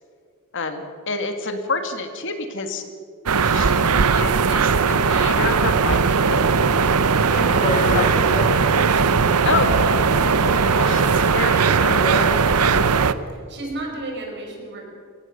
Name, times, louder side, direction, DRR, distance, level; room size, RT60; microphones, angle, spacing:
voice 1, 0.5-2.8 3.4-6.5 7.9-8.2 9.4-10.1 10.4-12.4, left 3 dB, 55° left, 7 dB, 1.9 m, -28 dB
sound 1, 3.3-13.1, right 5 dB, 85° right, 0.8 m, -18 dB
Speech, 7.0-12.8, left 1 dB, 35° left, 2.5 m, -31 dB
voice 2, 8.2-9.0 13.3-14.8, right 2 dB, 50° right, 1 dB, 5.4 m, -33 dB
23.0 x 18.0 x 6.5 m, 2.1 s
head